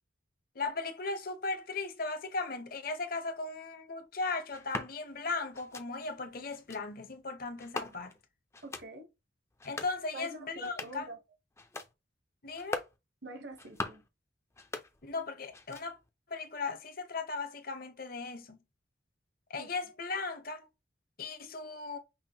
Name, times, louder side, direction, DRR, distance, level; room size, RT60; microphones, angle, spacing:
voice 1, 0.6-8.1 9.6-11.1 12.4-12.8 15.0-16.0 16.3-18.6 19.5-20.7 21.2-22.0, left 3 dB, 50° left, 0.8 m, -37 dB
sound 1, 4.5-4.9 5.5-5.9 6.5-6.8 7.6-8.2 8.5-8.9 9.5-10.0 10.5-11.1 11.5-11.9 12.5-13.0 13.5-14.1 14.5-15.2 15.5-16.1, left 2 dB, 15° left, 0.4 m, -41 dB
voice 2, 8.6-9.1 10.1-11.2 13.2-14.0 19.6-19.7, right 2 dB, 60° right, 1.0 m, -45 dB
5.5 x 2.1 x 2.8 m
head